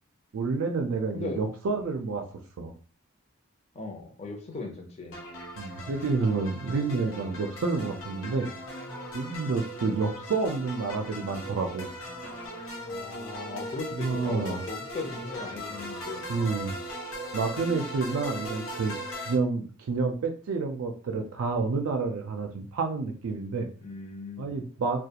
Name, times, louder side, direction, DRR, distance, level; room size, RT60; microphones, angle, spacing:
voice 1, 0.3-2.2 2.6-2.7 5.6-8.5 9.1-11.9 13.9-14.7 16.3-16.8 17.3-23.7 24.4-25.1, right 4 dB, 80° right, 4 dB, 0.4 m, -29 dB
voice 2, 3.7-5.2 12.9-16.3 23.8-24.6, left 3 dB, 30° left, 1 dB, 0.6 m, -38 dB
sound 1, 5.1-19.4, equal, 75° left, 0.8 m, -39 dB
2.4 x 2.2 x 2.8 m, 0.39 s
head